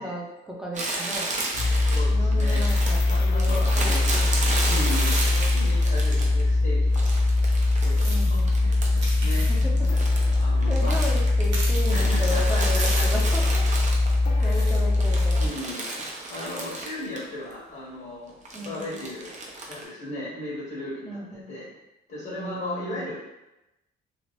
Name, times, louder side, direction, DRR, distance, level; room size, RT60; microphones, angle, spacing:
voice 1, 0.0-1.4 2.1-4.6 8.0-8.6 9.5-9.8 10.7-13.7 14.4-15.5 18.5-19.0 21.0-21.5 22.3-23.2, equal, 5° right, -3 dB, 0.7 m, -35 dB
Crumpling crinkling, 0.7-6.5 6.9-9.1 9.4-14.4 14.8-17.3 17.5-17.6 18.5-19.8, right 2 dB, 35° right, 0.7 m, -33 dB
sound 1, 1.5-15.5, left 2 dB, 80° left, 0.5 m, -22 dB
voice 2, 1.8-4.1 4.7-7.1 7.5-8.4 8.9-9.4 10.4-11.0 11.9-13.1 14.2-14.6 15.4-19.3 19.7-21.7 22.1-23.2, left 1 dB, 50° left, -8 dB, 1.3 m, -37 dB
sound 2, 4.9-5.4 7.9-8.4 8.9-9.6 11.5-11.9 12.8-13.4 14.4-14.8, right 2 dB, 70° right, 1.0 m, -35 dB
3.0 x 2.4 x 3.0 m, 0.93 s
cardioid pair, 90°, 20 cm